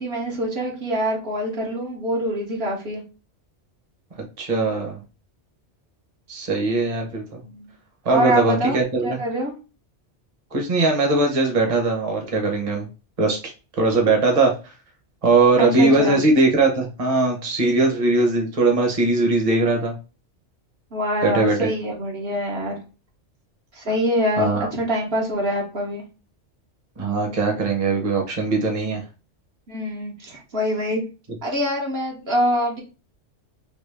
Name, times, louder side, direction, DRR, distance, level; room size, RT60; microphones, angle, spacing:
voice 1, 0.0-3.0 7.4-7.7 8.1-9.6 15.6-16.2 20.9-22.8 23.7-26.0 29.7-31.0 31.4-32.8, equal, 60° right, -1 dB, 1.2 m, -25 dB
voice 2, 4.4-5.0 6.3-7.4 8.0-9.2 10.5-12.9 13.2-13.4 13.8-14.5 15.2-19.9 21.2-21.7 24.4-24.7 27.0-29.0, right 3 dB, 30° right, 1 dB, 1.0 m, -20 dB
3.3 x 3.0 x 3.3 m, 0.31 s
omnidirectional pair, 1.2 m